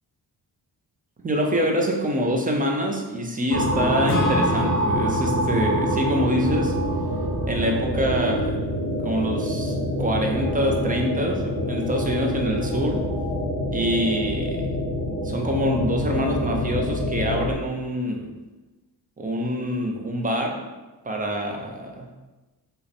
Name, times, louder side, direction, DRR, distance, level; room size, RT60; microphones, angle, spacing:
voice 1, 1.2-6.8 7.5-8.6 9.0-13.0 13.7-14.7 15.2-18.3 19.2-20.6 21.0-22.1, equal, 20° right, 2 dB, 0.5 m, -25 dB
sound 1, 3.5-17.5, equal, 40° right, 1.2 m, -26 dB
Acoustic guitar / Strum, 4.1-7.7, equal, 45° left, 0.6 m, -32 dB
5.4 x 2.2 x 4.1 m, 1.1 s
wide cardioid pair, 155°, 41 cm